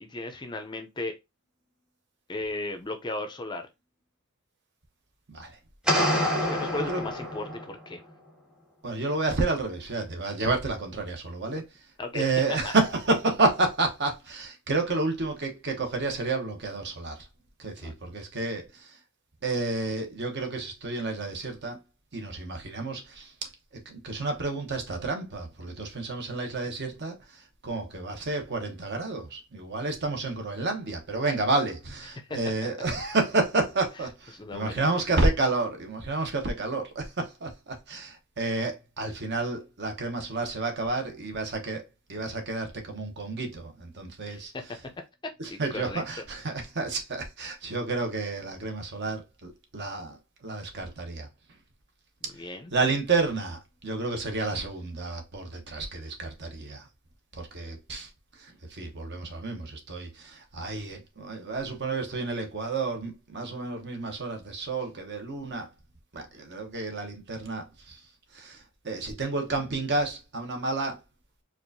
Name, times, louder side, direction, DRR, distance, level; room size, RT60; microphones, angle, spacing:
voice 1, 0.0-1.2 2.3-3.7 6.2-8.0 12.0-12.7 17.8-18.0 32.1-32.2 34.3-34.9 44.2-44.6 45.4-46.0 52.3-52.7, left 2 dB, 20° left, 0.5 m, -36 dB
sound 1, 5.9-7.8, equal, 5° right, 0.8 m, -27 dB
voice 2, 8.8-11.6 12.1-17.3 17.6-19.0 19.4-21.8 22.1-23.3 23.9-27.2 27.6-41.8 42.1-44.5 45.4-51.3 52.7-56.8 57.3-58.1 58.4-65.7 66.1-68.0 68.3-71.0, right 3 dB, 50° right, 0.9 m, -30 dB
4.5 x 2.4 x 2.6 m
head